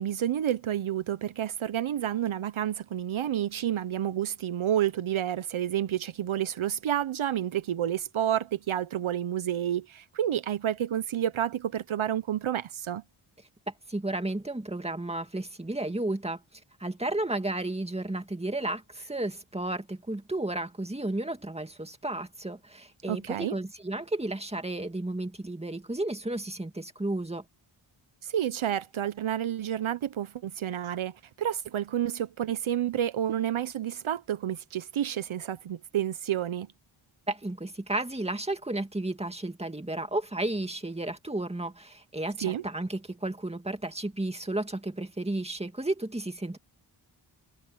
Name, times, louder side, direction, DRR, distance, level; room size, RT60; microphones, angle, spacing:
voice 1, 0.0-13.0 23.1-23.6 28.2-36.7 42.4-42.6, right 10 dB, 75° right, 0.8 m, -30 dB
voice 2, 13.9-27.4 37.3-46.6, right 2 dB, 10° right, 2.1 m, -33 dB
wide cardioid pair, 85°, 49 cm